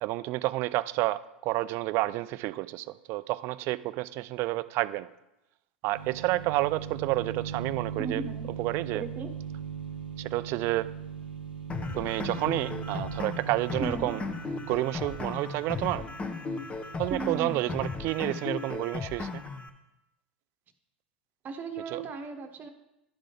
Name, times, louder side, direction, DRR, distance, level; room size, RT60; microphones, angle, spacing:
voice 1, 0.0-5.1 5.8-8.2 8.6-9.0 10.2-10.9 12.0-14.2 14.7-16.0 17.0-19.4 21.9-22.0, right 18 dB, 50° right, 16 dB, 0.3 m, -30 dB
sound 1, 5.9-17.8, right 7 dB, 85° right, 0.8 m, -40 dB
voice 2, 8.0-8.5 8.9-9.3 13.8-14.1 17.1-17.7 21.4-22.7, right 4 dB, 30° right, 6 dB, 1.0 m, -36 dB
sound 2, 11.7-19.7, left 4 dB, 20° left, 0.8 m, -36 dB
11.0 x 3.7 x 5.2 m, 0.92 s
hypercardioid pair, 90°, 5 cm